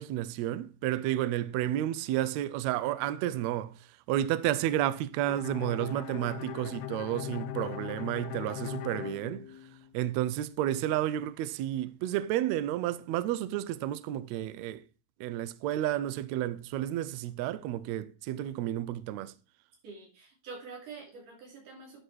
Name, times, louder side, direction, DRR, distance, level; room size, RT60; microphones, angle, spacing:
voice 1, 0.0-3.7 4.1-9.5 9.9-14.8 15.2-19.3, right 13 dB, 90° right, 1.5 m, -31 dB
Bowed string instrument, 5.3-10.1, left 15 dB, 85° left, 1.6 m, -40 dB
voice 2, 19.8-22.0, right 4 dB, 70° right, 4.2 m, -46 dB
10.0 x 5.1 x 4.7 m
omnidirectional pair, 3.8 m